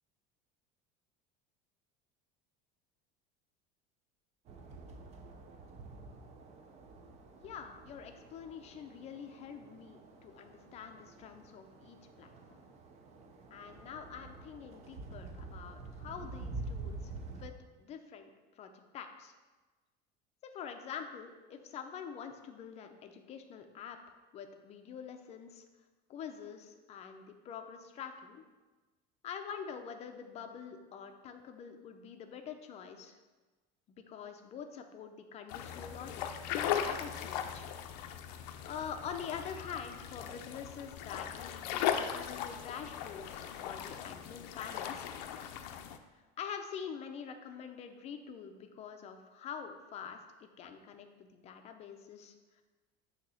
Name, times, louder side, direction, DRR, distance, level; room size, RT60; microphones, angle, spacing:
sound 1, 4.5-17.5, right 3 dB, 30° right, 0.5 m, -48 dB
voice 1, 7.4-12.6 13.5-17.1 17.4-19.3 20.4-24.0 24.3-25.6 26.1-28.4 29.2-33.2 33.9-37.7 38.6-45.1 46.4-52.6, left 7 dB, 30° left, 6 dB, 0.5 m, -46 dB
sound 2, 35.5-46.0, left 9 dB, 90° left, 0.5 m, -38 dB
6.4 x 2.9 x 5.6 m, 1.2 s
cardioid pair, 155°, 21 cm